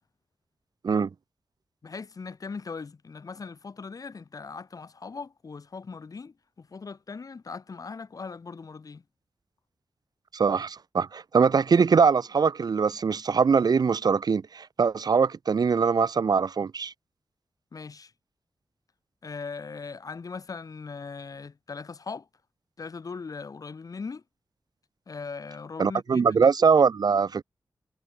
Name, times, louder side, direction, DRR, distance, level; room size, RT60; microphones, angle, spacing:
voice 1, 1.8-9.0 17.7-18.1 19.2-22.3 22.8-24.2 25.1-26.5, left 4 dB, 55° left, 4.1 m, -39 dB
voice 2, 10.3-16.9 25.8-27.4, right 5 dB, 70° right, 1.3 m, -22 dB
wide cardioid pair, 125°, 7 cm